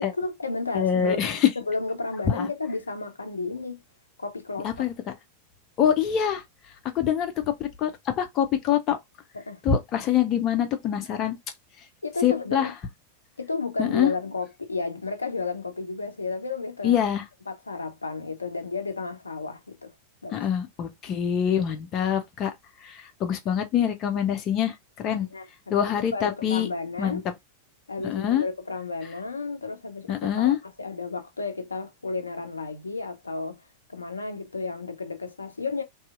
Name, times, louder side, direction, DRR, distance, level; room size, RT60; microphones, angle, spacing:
voice 1, 0.0-3.8 4.2-4.7 9.3-9.6 12.0-12.7 13.4-17.0 17.5-19.9 20.2-20.5 25.1-25.8 26.1-27.2 27.9-33.6 33.9-35.8, left 3 dB, 75° left, 0.5 m, -32 dB
voice 2, 0.7-1.5 2.3-2.5 4.6-4.9 5.8-6.4 6.9-7.3 7.6-9.0 9.6-11.4 12.2-12.7 13.8-14.1 16.8-17.2 20.3-22.5 22.8-25.3 25.7-26.7 27.0-27.2 28.0-28.4 30.1-30.6, left 9 dB, 35° left, 0.6 m, -24 dB
2.7 x 2.7 x 2.4 m
figure-of-eight pair, 90°, 0 cm